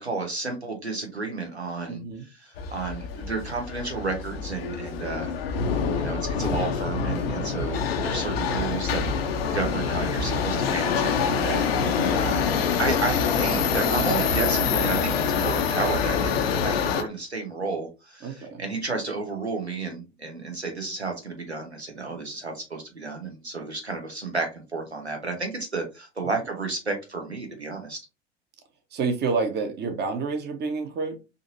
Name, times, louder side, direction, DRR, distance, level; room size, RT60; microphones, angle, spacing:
voice 1, 0.0-2.0 2.3-5.3 5.9-9.0 9.5-12.5 12.8-28.0, right 3 dB, 90° right, 1.0 m, -32 dB
voice 2, 1.9-2.3 5.8-6.0 7.3-7.7 12.0-12.4 18.2-18.6 26.2-26.3 28.9-31.2, right 4 dB, 30° right, 1.0 m, -29 dB
Subway metro underground, 2.6-17.0, left 6 dB, 70° left, 0.6 m, -26 dB
3.9 x 2.7 x 2.6 m
figure-of-eight pair, 75°, 32 cm